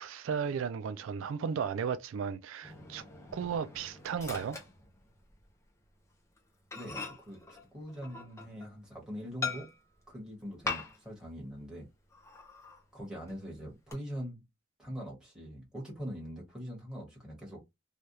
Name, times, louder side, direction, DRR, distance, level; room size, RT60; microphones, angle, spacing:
voice 1, 0.0-3.0 3.3-4.6, right 6 dB, 80° right, 0.3 m, -35 dB
Microwave oven, 2.6-5.5 5.8-6.0 6.4-6.5 6.7-8.8 9.4-10.0 10.6-11.2 11.5-11.6 12.1-12.8 13.3-13.9, left 4 dB, 15° left, 0.6 m, -41 dB
voice 2, 6.7-9.7 10.1-11.9 12.9-14.4 14.8-17.6, equal, 5° right, 1.4 m, -42 dB
3.3 x 2.3 x 2.7 m
head